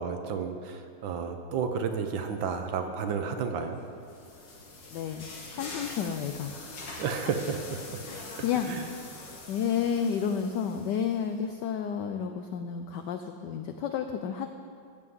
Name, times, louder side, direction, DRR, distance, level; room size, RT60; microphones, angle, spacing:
voice 1, 0.0-3.8 7.0-8.0 8.7-8.9, right 6 dB, 70° right, 6 dB, 1.5 m, -32 dB
sound 1, 3.7-11.3, left 3 dB, 55° left, 2.0 m, -44 dB
voice 2, 4.9-6.5 8.1-8.7 9.5-14.5, left 7 dB, 80° left, 7 dB, 0.9 m, -31 dB
14.0 x 5.6 x 7.9 m, 2.3 s
omnidirectional pair, 2.4 m